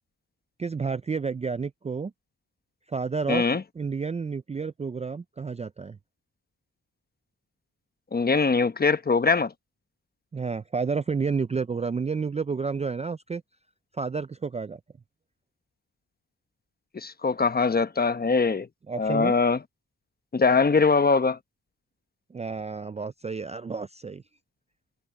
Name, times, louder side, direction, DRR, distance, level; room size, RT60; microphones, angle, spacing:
voice 1, 0.6-2.1 2.9-3.4 3.8-6.0 10.3-13.4 13.9-14.8 18.9-19.3 22.3-24.2, right 5 dB, 20° right, 0.4 m, -30 dB
voice 2, 3.3-3.6 8.1-9.5 16.9-18.7 19.0-19.6 20.3-21.4, left 4 dB, 30° left, 1.0 m, -22 dB
cardioid pair, 90°, 31 cm